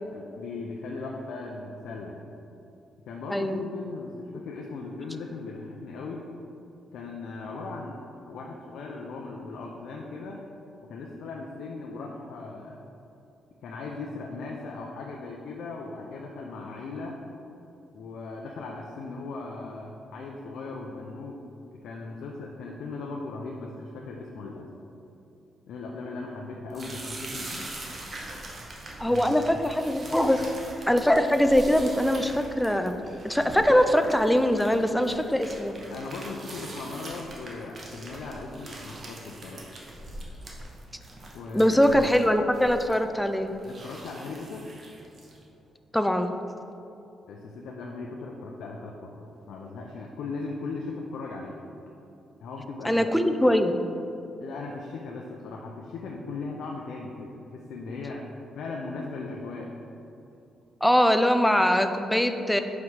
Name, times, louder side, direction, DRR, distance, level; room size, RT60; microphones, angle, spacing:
voice 1, 0.1-2.2 3.1-6.3 6.9-10.4 10.9-12.9 13.6-17.2 17.9-21.4 21.7-24.7 25.7-27.7 29.1-29.4 35.9-39.6 41.3-41.8 43.6-44.6 47.3-51.6 52.4-53.1 54.4-58.3 58.5-59.7, left 3 dB, 80° left, -1 dB, 0.5 m, -38 dB
voice 2, 3.3-3.6 29.0-30.5 30.9-32.9 33.2-35.7 41.5-43.5 45.9-46.3 52.8-53.8 60.8-62.6, equal, 5° left, 7 dB, 0.3 m, -22 dB
sound 1, 26.7-45.4, right 1 dB, 40° right, 1.0 m, -42 dB
4.8 x 4.6 x 5.6 m, 2.8 s
cardioid pair, 130°, 0 cm